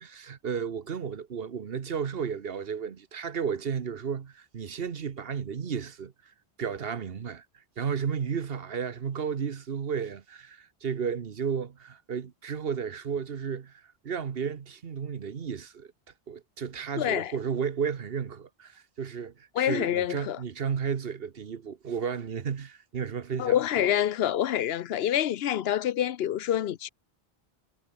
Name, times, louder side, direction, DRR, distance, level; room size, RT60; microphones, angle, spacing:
voice 1, 0.0-15.9 16.3-23.9, right 6 dB, 65° right, 1.3 m, -33 dB
voice 2, 17.0-17.3 19.5-20.4 23.4-26.9, left 11 dB, 75° left, 0.9 m, -27 dB
omnidirectional pair, 1.0 m